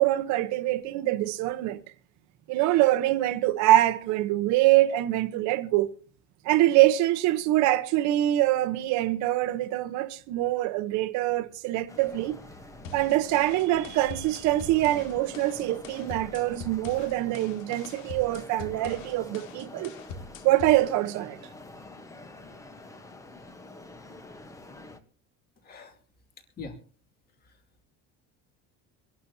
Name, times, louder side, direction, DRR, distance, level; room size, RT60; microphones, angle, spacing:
voice 1, 0.0-1.8 2.5-5.9 6.4-12.4 12.9-19.9 20.4-21.4, right 15 dB, 60° right, 1.0 m, -24 dB
sound 1, 11.9-25.0, left 2 dB, 10° left, 1.0 m, -46 dB
sound 2, 12.8-20.8, left 4 dB, 70° left, 2.0 m, -43 dB
voice 2, 25.6-26.0 26.4-26.8 27.3-27.8, left 4 dB, 30° left, 2.5 m, -45 dB
25.0 x 11.5 x 2.8 m
cardioid pair, 175°, 32 cm